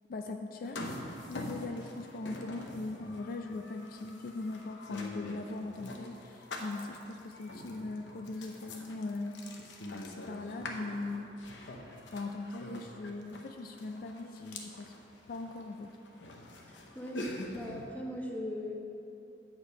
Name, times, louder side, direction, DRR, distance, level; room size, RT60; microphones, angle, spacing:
voice 1, 0.1-9.4 9.9-11.3 12.1-14.9 15.3-16.0, left 3 dB, 50° left, 4 dB, 0.3 m, -40 dB
sound 1, 0.6-17.9, left 1 dB, 75° left, 0.8 m, -45 dB
voice 2, 16.7-18.7, left 1 dB, 10° left, -1 dB, 0.8 m, -40 dB
8.5 x 4.9 x 5.4 m, 2.9 s
head